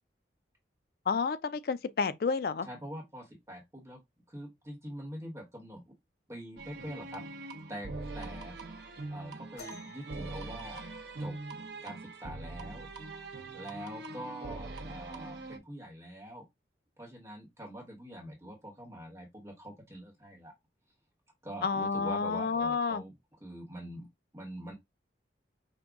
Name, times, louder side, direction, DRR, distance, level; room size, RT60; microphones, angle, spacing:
voice 1, 1.1-2.7 21.6-23.0, left 5 dB, 55° left, 0.4 m, -30 dB
voice 2, 2.6-4.0 4.3-5.9 6.3-7.9 8.1-10.8 11.2-11.3 11.8-12.9 13.1-13.3 13.5-16.5 17.0-20.5 21.4-23.1 23.4-24.1 24.3-24.7, equal, 15° right, 1.1 m, -44 dB
sound 1, 6.6-15.6, right 2 dB, 60° right, 0.6 m, -42 dB
sound 2, 9.6-11.5 13.1-13.2 14.0-14.2 15.2-15.3, left 3 dB, 80° left, 1.7 m, -53 dB
5.1 x 2.2 x 3.5 m
head